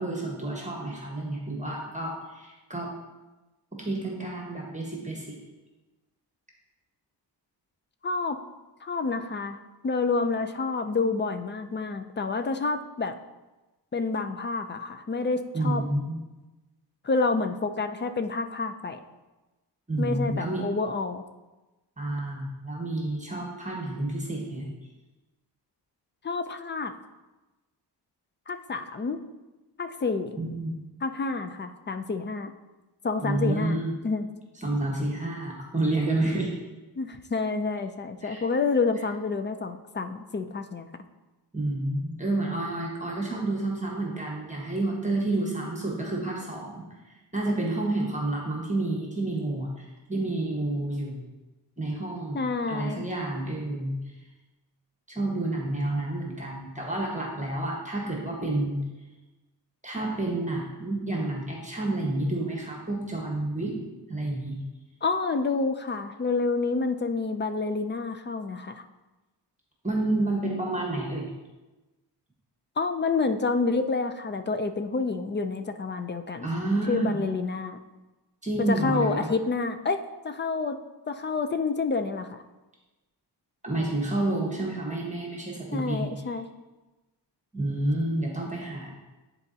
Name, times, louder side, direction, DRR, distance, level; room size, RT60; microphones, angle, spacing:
voice 1, 0.0-2.9 3.7-5.4 15.5-16.2 19.9-20.6 22.0-24.7 30.4-30.8 33.2-33.9 34.6-36.5 38.2-38.4 41.5-46.8 47.3-51.2 51.8-52.4 52.7-54.0 55.1-58.8 59.8-63.8 64.1-64.6 69.8-71.3 76.4-77.2 78.4-79.3 83.6-86.1 87.5-88.9, right 2 dB, 15° right, -2 dB, 1.3 m, -29 dB
voice 2, 8.0-8.4 8.8-9.6 9.8-13.1 13.9-15.8 17.0-19.0 20.0-21.3 26.2-26.9 28.5-29.2 29.8-30.4 31.0-32.5 33.0-34.3 37.0-40.9 52.3-53.0 65.0-68.8 72.8-76.5 76.9-77.8 78.7-80.0 80.2-80.8 81.1-82.4 85.7-86.5, left 4 dB, 25° left, 8 dB, 0.4 m, -28 dB
10.0 x 4.1 x 2.8 m, 1.1 s
wide cardioid pair, 100°, 43 cm